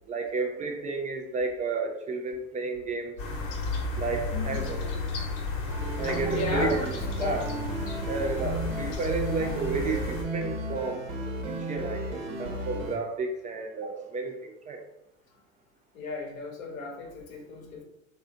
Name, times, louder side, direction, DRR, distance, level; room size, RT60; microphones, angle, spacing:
voice 1, 0.1-3.2 4.0-5.1 6.0-6.8 7.2-7.5 8.1-11.1 11.5-14.8, right 4 dB, 20° right, 2 dB, 0.3 m, -32 dB
sound 1, 3.2-10.2, left 3 dB, 50° left, 1.1 m, -33 dB
voice 2, 4.3-4.7 6.2-6.9 7.2-7.5 15.9-17.8, left 3 dB, 80° left, 2 dB, 1.0 m, -35 dB
sound 2, 5.7-13.0, right 1 dB, 70° right, 1.0 m, -34 dB
3.2 x 2.6 x 3.6 m, 0.85 s
hypercardioid pair, 85°, 40 cm